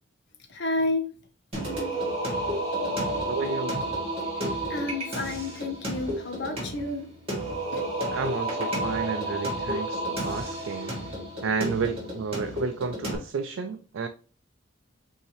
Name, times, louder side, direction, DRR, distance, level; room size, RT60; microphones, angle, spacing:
voice 1, 0.5-1.1 4.7-7.1 7.7-7.8, left 2 dB, 60° left, 0.9 m, -30 dB
Singing, 1.5-13.2, right 1 dB, 30° right, 2.3 m, -31 dB
voice 2, 3.3-3.9 8.1-11.0 11.4-14.1, right 5 dB, 75° right, 0.4 m, -31 dB
5.6 x 2.8 x 3.1 m
head